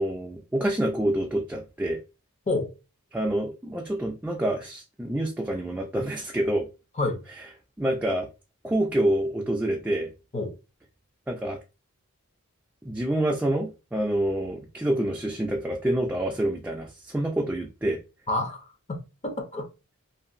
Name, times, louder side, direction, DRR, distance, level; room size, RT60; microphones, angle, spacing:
voice 1, 0.0-2.0 3.1-6.7 7.8-8.3 8.6-10.1 11.3-11.6 12.8-18.0, right 1 dB, 5° right, 0.3 m, -27 dB
voice 2, 18.3-19.7, left 2 dB, 30° left, 0.6 m, -29 dB
2.7 x 2.5 x 2.5 m
head